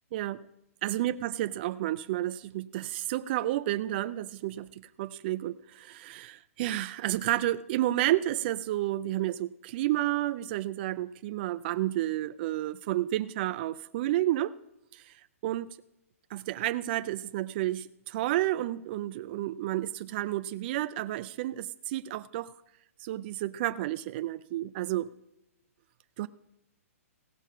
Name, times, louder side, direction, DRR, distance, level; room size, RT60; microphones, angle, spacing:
voice 1, 0.1-0.5 0.8-14.5 14.9-15.1 15.4-15.7 16.3-22.5 23.0-25.1 26.2-26.3, right 14 dB, 40° right, 14 dB, 0.3 m, -31 dB
16.0 x 7.1 x 5.5 m, 0.85 s
hypercardioid pair, 130°, 8 cm